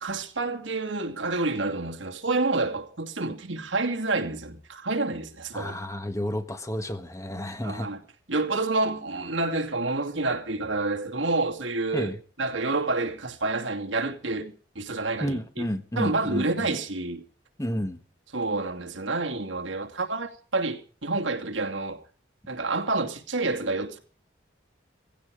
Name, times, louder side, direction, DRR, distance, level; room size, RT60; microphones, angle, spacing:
voice 1, 0.0-5.8 7.6-8.0 8.3-12.1 12.4-15.7 16.0-17.2 18.3-22.0 22.5-24.0, right 3 dB, 80° right, 2.6 m, -28 dB
voice 2, 5.5-7.9 11.9-12.2 15.2-16.7 17.6-18.0, left 1 dB, 15° left, 1.4 m, -31 dB
17.5 x 16.0 x 4.9 m
head